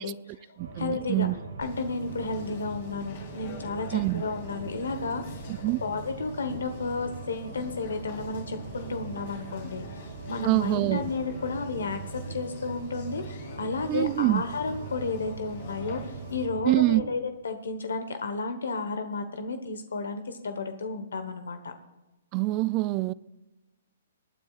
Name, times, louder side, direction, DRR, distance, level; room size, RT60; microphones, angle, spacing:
voice 1, 0.0-1.3 1.6-5.4 5.8-21.7, left 3 dB, 85° left, 1.2 m, -32 dB
voice 2, 0.6-1.3 3.9-4.2 5.6-5.8 10.4-11.1 13.9-14.4 16.6-17.0 22.3-23.1, right 20 dB, 35° right, 0.3 m, -25 dB
sound 1, 0.6-17.1, right 5 dB, 75° right, 2.0 m, -41 dB
Conversation, 1.6-16.5, left 4 dB, 55° left, 3.6 m, -45 dB
25.0 x 9.3 x 2.4 m
hypercardioid pair, 140°, 0 cm